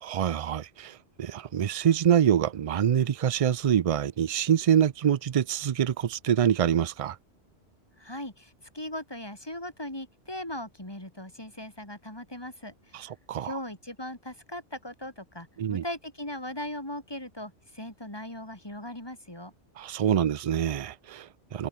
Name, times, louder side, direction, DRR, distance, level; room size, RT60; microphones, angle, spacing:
voice 1, 0.0-7.2 12.9-13.5 15.6-15.8 19.8-21.7, right 9 dB, 50° right, 0.4 m, -25 dB
voice 2, 8.0-13.1 13.4-19.5, left 1 dB, 20° left, 4.1 m, -39 dB
omnidirectional pair, 1.2 m